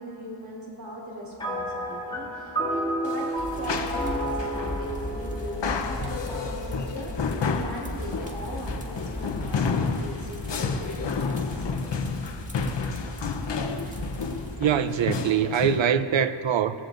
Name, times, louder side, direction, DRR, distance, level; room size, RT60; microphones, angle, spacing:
voice 1, 0.0-11.7, equal, 50° right, 3.8 m, -39 dB
sound 1, 1.4-6.9, equal, 10° left, 2.0 m, -31 dB
sound 2, 3.0-15.9, left 5 dB, 65° left, 0.9 m, -31 dB
sound 3, 3.4-14.5, equal, 15° right, 2.0 m, -37 dB
voice 2, 14.6-16.7, right 8 dB, 75° right, 0.7 m, -23 dB
23.0 x 18.5 x 2.6 m
wide cardioid pair, 115°, 46 cm